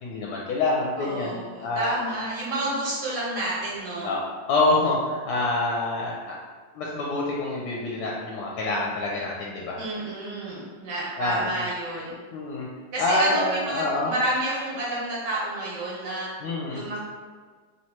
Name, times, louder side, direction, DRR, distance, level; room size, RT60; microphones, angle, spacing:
voice 1, 0.0-1.9 4.0-4.2 4.5-6.3 6.7-9.8 11.2-11.5 12.3-12.7 13.0-14.1 16.4-16.8, left 2 dB, 70° left, -3 dB, 1.0 m, -26 dB
voice 2, 1.0-4.1 9.7-12.1 12.9-16.3 16.7-17.0, right 1 dB, 75° right, -6 dB, 1.9 m, -30 dB
3.1 x 3.0 x 4.3 m, 1.5 s
omnidirectional pair, 1.9 m